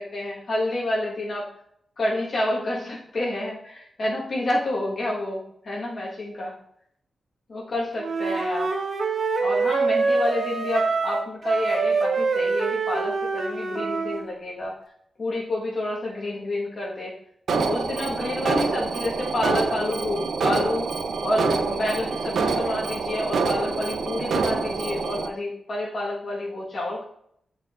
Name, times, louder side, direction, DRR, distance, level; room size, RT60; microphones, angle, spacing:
voice 1, 0.0-1.5 2.0-6.6 7.5-8.7 9.4-14.8 15.2-17.1 17.6-20.9 21.2-27.0, left 1 dB, 50° left, -4 dB, 1.3 m, -29 dB
Wind instrument woodwind instrument, 8.0-14.2, right 4 dB, 55° right, 0.7 m, -25 dB
Alarm, 17.5-25.3, right 4 dB, 90° right, 0.5 m, -26 dB
8.8 x 4.4 x 2.4 m, 0.69 s
wide cardioid pair, 135°, 0 cm